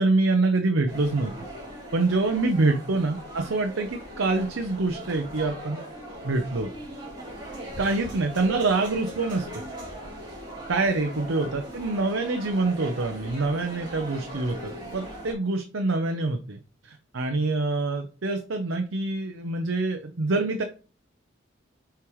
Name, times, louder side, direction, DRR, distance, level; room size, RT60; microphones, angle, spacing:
voice 1, 0.0-1.3 1.9-5.8 6.2-6.7 7.8-9.6 10.7-20.6, right 3 dB, 85° right, 4 dB, 0.7 m, -26 dB
sound 1, 0.9-15.3, right 1 dB, 20° right, 3.3 m, -40 dB
7.2 x 4.6 x 3.1 m, 0.36 s
head